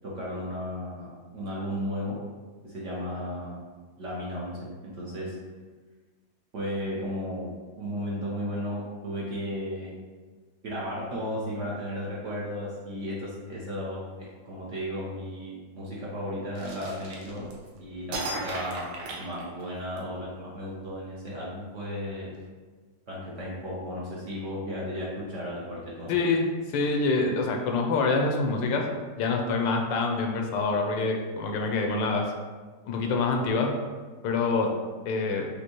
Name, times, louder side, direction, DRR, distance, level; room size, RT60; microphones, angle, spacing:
voice 1, 0.0-2.2 2.6-3.6 4.0-5.3 6.5-9.9 10.6-17.5 17.8-18.9 19.2-22.3 23.1-26.1, equal, 55° right, -6 dB, 0.9 m, -34 dB
sound 1, 16.6-17.7 18.1-20.0, right 2 dB, 70° right, 1.3 m, -35 dB
voice 2, 26.1-26.5 26.7-28.9 29.2-32.3 32.9-33.7 34.2-34.7 35.1-35.5, left 3 dB, 80° left, 2 dB, 1.3 m, -26 dB
5.1 x 2.8 x 2.9 m, 1.4 s
omnidirectional pair, 2.0 m